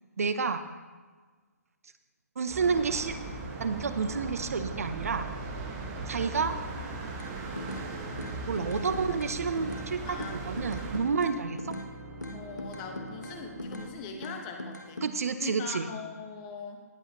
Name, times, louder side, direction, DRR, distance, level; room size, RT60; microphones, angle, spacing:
voice 1, 0.2-0.6 2.4-3.2 3.6-5.3 6.1-6.6 8.5-11.6 15.0-15.9, right 5 dB, 60° right, 10 dB, 0.7 m, -29 dB
sound 1, 2.5-11.0, right 3 dB, 20° right, 1.5 m, -39 dB
Organ, 2.6-14.4, right 1 dB, 40° right, 3.0 m, -45 dB
voice 2, 2.7-3.0 5.7-6.0 8.6-8.9 10.1-10.4 12.3-15.1 15.4-16.8, left 5 dB, 25° left, 4 dB, 1.4 m, -42 dB
sound 2, 7.2-7.9 8.2-9.9 10.2-11.9 12.2-13.9 14.2-15.1, left 1 dB, 85° left, 1.3 m, -40 dB
19.0 x 7.9 x 3.0 m, 1.4 s
figure-of-eight pair, 135°, 9 cm